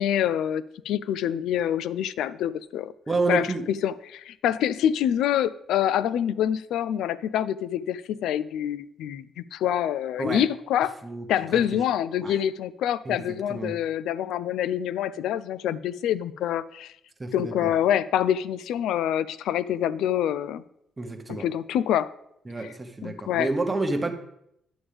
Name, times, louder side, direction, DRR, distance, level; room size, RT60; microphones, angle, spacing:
voice 1, 0.0-2.9 3.3-10.9 11.3-16.9 17.3-20.6 21.3-22.1 23.0-23.5, left 10 dB, 85° left, 17 dB, 0.3 m, -26 dB
voice 2, 3.1-3.6 10.2-10.4 11.0-11.2 11.5-11.6 12.2-12.4 13.0-13.2 13.5-13.8 17.2-17.7 21.0-21.5 22.5-24.1, right 3 dB, 20° right, 6 dB, 1.0 m, -29 dB
10.0 x 7.0 x 3.4 m, 0.76 s
cardioid pair, 90°, 0 cm